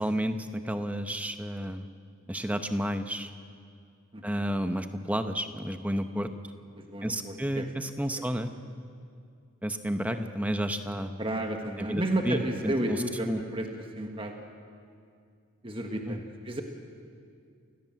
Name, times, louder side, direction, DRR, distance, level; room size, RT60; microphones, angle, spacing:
voice 1, 0.0-1.9 2.3-3.3 4.2-6.3 7.0-8.5 9.6-11.1 11.8-13.0 13.2-13.4 16.1-16.2, equal, 5° right, 7 dB, 0.9 m, -31 dB
voice 2, 4.1-4.4 6.7-7.7 10.1-10.2 11.2-14.3 15.6-16.6, right 1 dB, 25° right, 3 dB, 1.6 m, -32 dB
28.5 x 17.0 x 7.6 m, 2.3 s
head